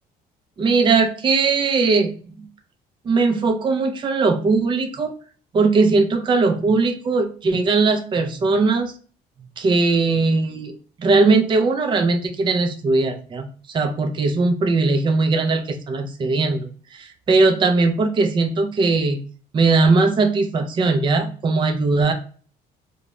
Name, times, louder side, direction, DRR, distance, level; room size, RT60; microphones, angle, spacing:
voice 1, 0.6-2.5 3.0-5.1 5.5-8.9 9.6-19.2 19.5-22.1, right 3 dB, 30° right, 5 dB, 0.4 m, -19 dB
2.4 x 2.1 x 2.9 m, 0.41 s
cardioid pair, 110°, 17 cm